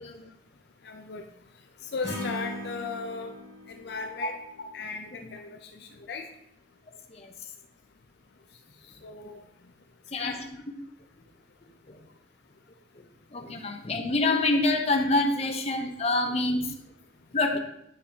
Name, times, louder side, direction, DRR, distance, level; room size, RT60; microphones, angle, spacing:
voice 1, 0.8-1.2 1.8-3.3 3.7-4.4 4.7-6.3 9.0-9.4 10.2-10.4, left 4 dB, 60° left, 5 dB, 0.5 m, -36 dB
Acoustic guitar / Strum, 2.0-5.3, equal, 35° right, 2.5 m, -39 dB
voice 2, 13.3-16.7 17.3-17.6, left 2 dB, 35° left, 4 dB, 0.8 m, -26 dB
8.6 x 6.9 x 2.8 m, 0.77 s
head